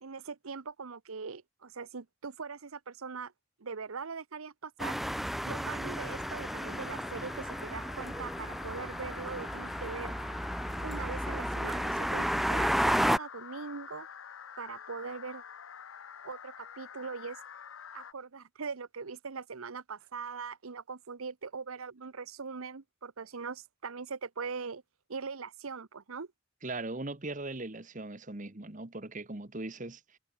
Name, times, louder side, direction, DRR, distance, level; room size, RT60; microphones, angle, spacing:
voice 1, 0.0-3.3 3.6-5.0 5.4-10.1 10.8-14.1 14.6-15.4 16.2-17.4 17.9-24.8 25.1-26.3, right 5 dB, 90° right, 0.9 m, -41 dB
sound 1, 4.8-13.2, equal, ahead, 0.3 m, -32 dB
sound 2, 6.0-18.1, left 7 dB, 70° left, 0.7 m, -47 dB
voice 2, 26.6-30.2, right 2 dB, 35° right, 1.4 m, -39 dB
head